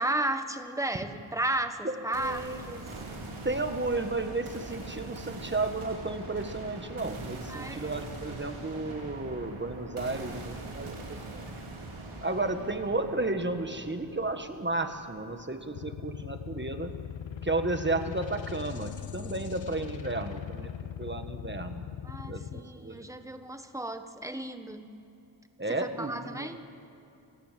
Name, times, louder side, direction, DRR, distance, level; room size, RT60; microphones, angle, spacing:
voice 1, 0.0-2.9 7.5-8.0 22.0-24.9 25.7-26.6, right 1 dB, 5° right, 8 dB, 1.4 m, -34 dB
voice 2, 1.8-2.6 3.4-11.6 12.2-16.9 17.4-20.7 21.0-21.8 22.3-23.1 25.6-26.5, right 2 dB, 20° right, 7 dB, 1.4 m, -33 dB
sound 1, 2.1-16.1, right 2 dB, 75° right, 3.5 m, -42 dB
sound 2, 15.8-22.6, left 9 dB, 65° left, 1.1 m, -40 dB
28.0 x 16.0 x 7.5 m, 2.8 s
wide cardioid pair, 100°, 49 cm